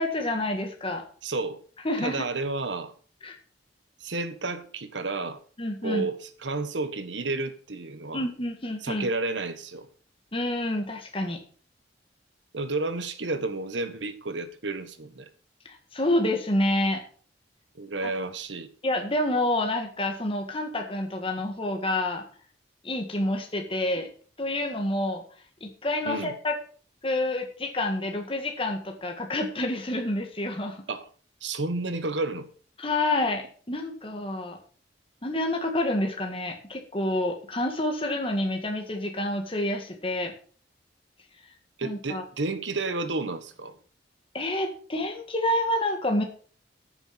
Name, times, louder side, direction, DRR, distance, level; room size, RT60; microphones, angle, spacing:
voice 1, 0.0-1.0 1.8-2.2 3.2-3.4 5.6-6.0 8.1-9.1 10.3-11.4 15.7-17.0 18.0-18.1 18.8-22.2 22.8-24.1 24.4-25.2 25.6-26.6 27.0-30.8 32.8-34.6 35.2-40.3 41.8-42.2 44.3-46.2, left 1 dB, 30° left, 1.8 m, -28 dB
voice 2, 1.2-1.6 2.0-2.9 4.0-5.4 5.8-8.3 8.8-9.9 12.5-15.3 17.7-18.7 26.0-26.3 30.9-31.1 31.4-32.5 41.8-43.8, right 3 dB, 90° right, 1.5 m, -31 dB
13.5 x 7.0 x 5.9 m
head